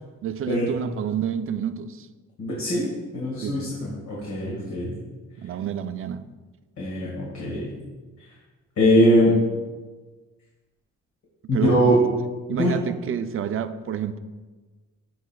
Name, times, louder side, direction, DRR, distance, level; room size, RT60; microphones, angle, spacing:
voice 1, 0.2-2.1 3.4-3.7 5.4-6.2 11.5-11.8 12.5-14.2, right 8 dB, 45° right, 10 dB, 0.5 m, -29 dB
voice 2, 2.4-5.0 6.8-7.7 8.8-9.3 11.5-12.0 12.6-12.7, equal, 65° left, -5 dB, 1.9 m, -22 dB
13.5 x 4.6 x 2.3 m, 1.3 s
cardioid pair, 90°, 30 cm